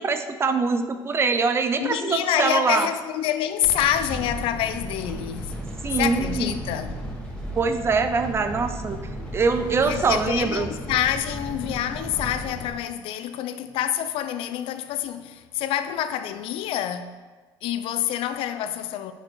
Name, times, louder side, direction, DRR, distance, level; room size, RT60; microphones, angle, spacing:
voice 1, 0.0-2.9 5.8-6.5 7.6-9.0 9.3-10.7, right 4 dB, 30° right, 0.6 m, -23 dB
voice 2, 1.8-5.5 5.9-7.0 9.8-17.1 17.6-19.1, left 11 dB, 85° left, 0.6 m, -27 dB
sound 1, 3.6-12.7, equal, 10° left, 1.9 m, -34 dB
9.8 x 5.1 x 4.6 m
cardioid pair, 145°, 9 cm